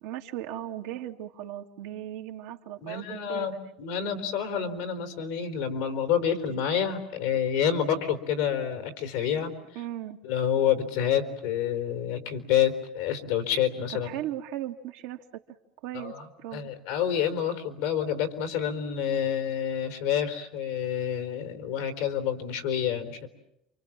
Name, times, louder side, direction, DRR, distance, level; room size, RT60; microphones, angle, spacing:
voice 1, 0.0-3.7 9.7-10.2 14.0-15.6 15.8-16.7, right 12 dB, 80° right, 3 dB, 1.9 m, -37 dB
voice 2, 2.8-9.5 10.2-14.1 15.9-16.3 16.5-23.3, left 9 dB, 85° left, 7 dB, 3.8 m, -28 dB
29.0 x 25.0 x 7.4 m, 0.80 s
supercardioid pair, 95°, 0 cm